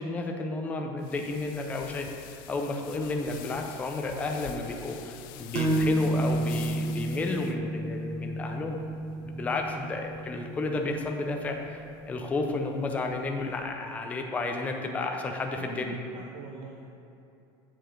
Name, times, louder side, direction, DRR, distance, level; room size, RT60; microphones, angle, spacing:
voice 1, 0.0-2.1 2.5-8.8 9.2-11.8 12.1-16.0, left 3 dB, 10° left, 2 dB, 0.5 m, -32 dB
sound 1, 1.0-7.5, left 11 dB, 75° left, 0.4 m, -46 dB
sound 2, 5.5-13.0, right 1 dB, 90° right, 1.2 m, -31 dB
voice 2, 15.6-16.9, right 5 dB, 45° right, 0 dB, 0.5 m, -44 dB
8.4 x 4.9 x 3.8 m, 2.7 s
cardioid pair, 165°, 11 cm